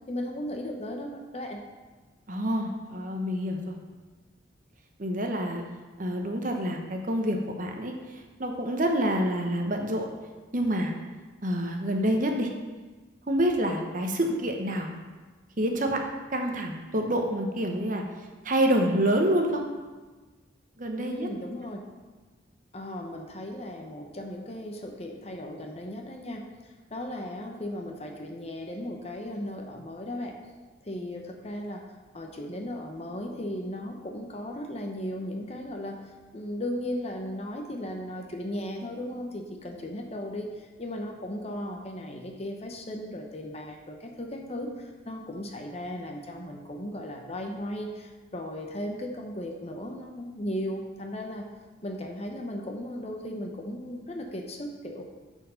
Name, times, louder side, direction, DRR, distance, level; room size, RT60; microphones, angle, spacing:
voice 1, 0.1-1.6 21.0-21.8 22.7-30.4 30.8-31.8 32.1-51.5 51.8-55.0, left 1 dB, 30° left, 2 dB, 0.8 m, -36 dB
voice 2, 2.3-3.7 5.0-5.6 6.0-7.9 8.4-10.1 10.5-10.9 11.4-12.5 13.3-14.9 15.6-16.0 16.3-18.0 18.4-19.6 20.8-21.3, right 1 dB, 40° right, 3 dB, 0.9 m, -27 dB
8.9 x 4.6 x 5.7 m, 1.3 s
head